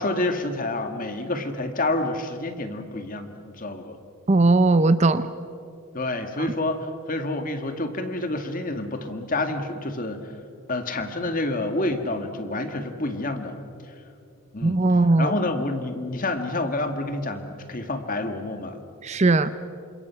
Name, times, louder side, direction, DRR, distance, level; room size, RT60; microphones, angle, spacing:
voice 1, 0.0-4.0 5.9-10.3 10.7-13.5 14.5-14.8 15.2-18.8, left 2 dB, 35° left, 7 dB, 1.8 m, -28 dB
voice 2, 4.3-5.3 14.6-15.3 19.0-19.5, right 2 dB, 30° right, 12 dB, 0.6 m, -18 dB
29.0 x 26.5 x 5.8 m, 2.6 s
head